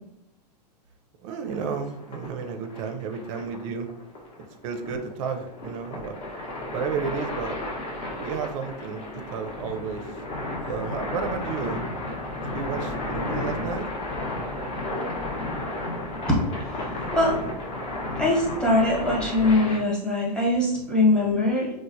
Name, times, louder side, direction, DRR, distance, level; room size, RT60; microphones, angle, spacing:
voice 1, 1.2-3.9 4.6-6.2 6.7-7.6 8.0-10.1 10.7-11.8 12.4-13.9, right 6 dB, 50° right, 6 dB, 0.5 m, -32 dB
sound 1, 1.5-19.8, left 2 dB, 30° left, 0.7 m, -33 dB
voice 2, 16.3-17.4 18.2-21.7, left 2 dB, 5° left, -4 dB, 1.0 m, -22 dB
3.0 x 2.0 x 2.6 m, 0.82 s
hypercardioid pair, 105°, 21 cm